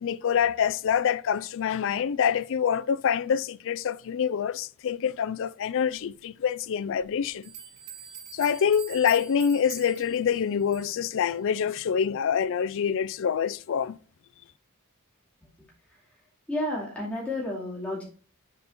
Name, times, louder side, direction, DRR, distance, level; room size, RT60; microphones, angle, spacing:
voice 1, 0.0-7.5 8.3-14.0, left 7 dB, 60° left, 0.4 m, -26 dB
sound 1, 7.4-11.1, right 8 dB, 90° right, 2.9 m, -44 dB
voice 2, 16.5-18.0, left 1 dB, 5° left, 2.4 m, -31 dB
7.1 x 4.1 x 4.3 m
head